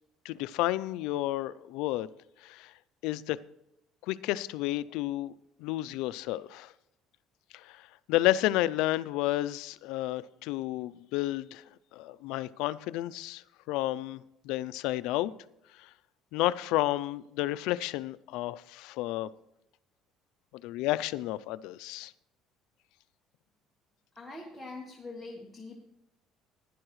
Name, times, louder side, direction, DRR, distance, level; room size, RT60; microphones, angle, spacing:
voice 1, 0.2-2.1 2.4-2.7 3.0-3.4 4.1-5.3 5.6-6.7 7.5-11.6 11.9-15.3 15.8-15.9 16.3-19.3 20.6-22.1, left 16 dB, 80° left, 0.4 m, -31 dB
voice 2, 24.2-25.8, left 2 dB, ahead, 1.5 m, -43 dB
15.5 x 11.0 x 3.1 m
cardioid pair, 155°, 0 cm